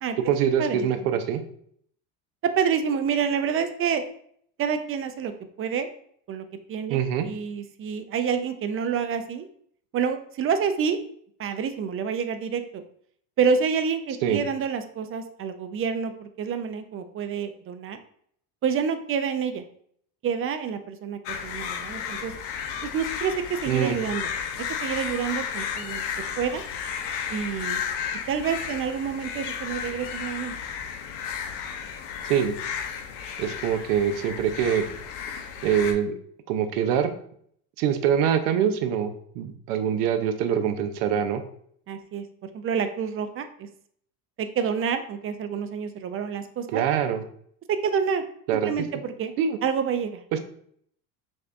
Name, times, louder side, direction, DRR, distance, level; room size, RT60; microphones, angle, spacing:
voice 1, 0.3-1.4 6.9-7.3 14.2-14.4 23.7-24.0 32.2-32.6 33.4-34.9 35.6-36.1 36.5-37.1 37.8-41.4 46.7-47.2 48.5-48.7 49.4-49.6 50.3-50.4, right 8 dB, 75° right, 8 dB, 0.7 m, -24 dB
voice 2, 2.6-4.0 4.6-5.3 5.6-5.9 6.3-9.5 9.9-11.0 11.4-12.8 13.4-18.0 18.6-19.6 20.2-22.3 22.8-24.3 24.8-26.0 26.4-26.6 27.3-27.8 28.3-30.5 41.9-42.2 42.5-43.7 44.4-46.8 47.8-48.2 48.6-49.3 49.6-50.2, right 6 dB, 30° right, 9 dB, 0.4 m, -28 dB
sound 1, 21.3-35.9, left 7 dB, 55° left, 0.7 m, -33 dB
5.6 x 2.6 x 2.5 m, 0.64 s
supercardioid pair, 95°, 47 cm